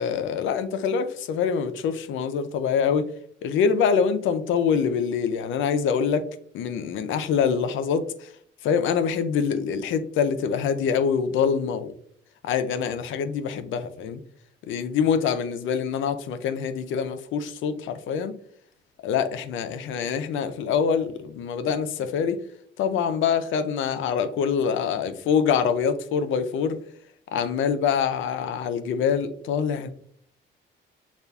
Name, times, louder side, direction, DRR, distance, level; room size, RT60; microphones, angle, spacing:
voice 1, 0.0-3.0 3.4-6.2 6.5-8.3 8.6-11.9 12.4-14.2 14.7-18.4 19.0-22.4 22.8-26.8 27.3-29.9, left 6 dB, 80° left, 0.5 m, -25 dB
6.5 x 2.4 x 2.3 m
cardioid pair, 90°, 20 cm